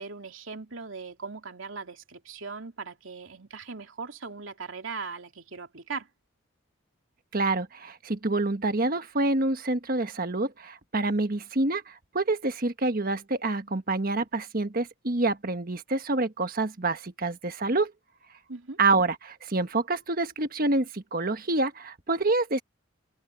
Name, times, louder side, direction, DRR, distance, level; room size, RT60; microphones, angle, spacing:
voice 1, 0.0-6.1 18.5-18.8, right 4 dB, 75° right, 3.1 m, -39 dB
voice 2, 7.3-17.9 18.8-22.6, right 2 dB, 45° right, 1.4 m, -27 dB
head